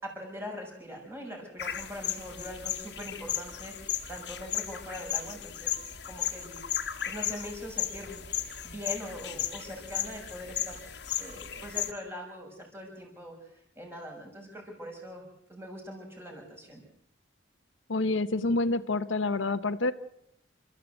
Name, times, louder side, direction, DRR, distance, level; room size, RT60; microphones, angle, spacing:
voice 1, 0.0-3.7 4.1-5.7 6.1-8.2 8.6-15.2 15.5-16.8, left 1 dB, 15° right, 0 dB, 6.2 m, -42 dB
sound 1, 1.6-11.9, left 10 dB, 60° left, 1.6 m, -35 dB
voice 2, 17.9-19.9, left 2 dB, 80° left, 11 dB, 1.0 m, -27 dB
29.5 x 13.5 x 8.0 m, 0.79 s
head